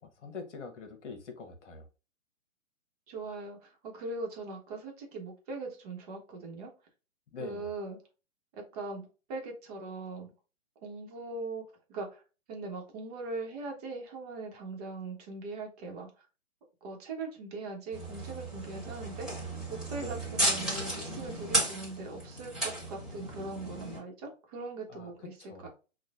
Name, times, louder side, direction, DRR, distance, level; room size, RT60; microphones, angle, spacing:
voice 1, 0.0-1.9 7.3-7.7 20.0-20.2 24.9-25.7, left 4 dB, 60° left, 1.3 m, -44 dB
voice 2, 3.1-6.7 7.4-8.0 8.5-10.3 10.8-11.6 11.9-12.2 12.5-16.1 16.8-25.7, right 3 dB, 30° right, 1.1 m, -40 dB
sound 1, 17.9-24.0, right 1 dB, ahead, 1.7 m, -34 dB
6.2 x 2.5 x 2.3 m
hypercardioid pair, 140°, 39 cm